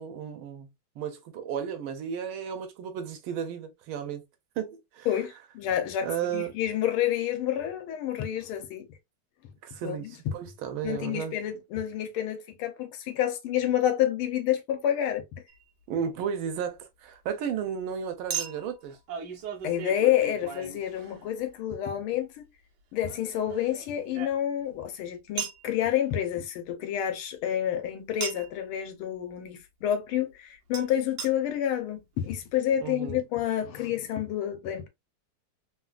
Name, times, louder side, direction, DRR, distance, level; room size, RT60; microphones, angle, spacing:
voice 1, 0.0-4.3 4.6-5.1 6.0-6.6 9.6-11.4 15.9-19.0 32.8-33.2, right 8 dB, 80° right, 1.5 m, -34 dB
voice 2, 5.1-8.9 9.8-10.1 10.8-15.2 19.6-22.5 22.9-34.9, left 11 dB, 85° left, 1.6 m, -29 dB
Chink clink, 15.5-15.6 18.3-21.5 23.0-24.7 25.4-25.7 28.2-28.6 30.7-30.8 31.2-31.3 32.0-32.3, right 7 dB, 65° right, 1.2 m, -37 dB
3.8 x 2.3 x 2.3 m
omnidirectional pair, 2.3 m